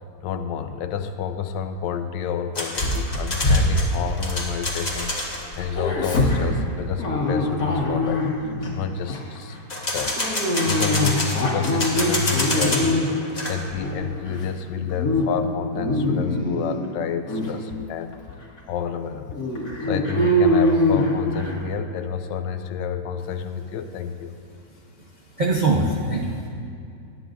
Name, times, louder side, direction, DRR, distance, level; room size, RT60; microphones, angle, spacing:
voice 1, 0.2-9.6 9.9-13.0 13.5-18.1 18.7-19.4 19.9-24.4, left 7 dB, 75° left, 9 dB, 1.2 m, -29 dB
sound 1, 2.5-5.4 9.7-12.9 13.2-13.5, left 1 dB, 25° left, 1.3 m, -27 dB
Dog, 2.8-5.1 5.4-8.7 9.1-9.4 10.2-13.3 13.7-14.4 14.8-15.2 15.6-16.8 17.3-17.5 18.1-18.2 18.6-18.7 19.3-21.6, left 1 dB, 50° left, 2.0 m, -23 dB
voice 2, 25.1-26.5, right 2 dB, 65° right, -2 dB, 0.4 m, -23 dB
17.5 x 10.0 x 2.6 m, 2.5 s
omnidirectional pair, 2.0 m